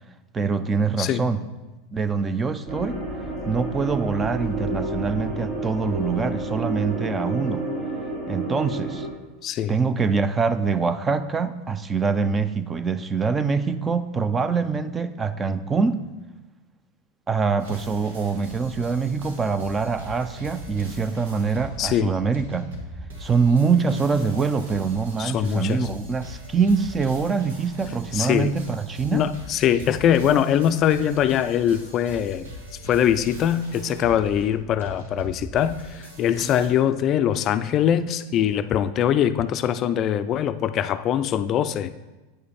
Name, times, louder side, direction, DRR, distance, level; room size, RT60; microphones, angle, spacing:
voice 1, 0.3-1.4 1.9-3.0 3.5-7.7 8.3-9.1 9.7-16.0 17.3-22.7 23.2-29.2, right 5 dB, 20° right, 12 dB, 0.5 m, -24 dB
sound 1, 2.7-9.1, right 2 dB, 55° right, 2.8 m, -30 dB
voice 2, 9.4-9.8 21.8-22.1 25.2-25.9 28.1-28.5 29.1-32.5 32.8-42.0, left 10 dB, 40° left, 12 dB, 0.4 m, -22 dB
sound 2, 17.6-36.7, equal, 85° right, 1.7 m, -41 dB
8.7 x 5.5 x 4.2 m, 1.1 s
hypercardioid pair, 110°, 0 cm